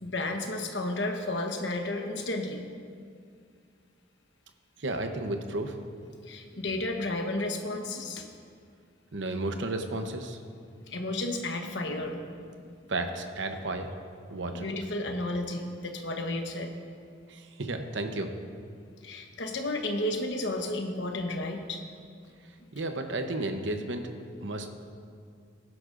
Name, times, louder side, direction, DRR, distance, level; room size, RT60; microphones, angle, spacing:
voice 1, 0.0-2.7 6.3-8.3 10.9-12.3 12.5-12.7 14.5-16.7 19.0-21.8, left 2 dB, 65° left, 3 dB, 1.1 m, -32 dB
voice 2, 4.8-5.8 9.1-10.4 12.9-13.9 14.3-14.7 17.3-18.3 22.7-24.1 24.4-24.7, right 2 dB, 70° right, 6 dB, 0.9 m, -33 dB
17.5 x 11.0 x 2.6 m, 2.2 s
head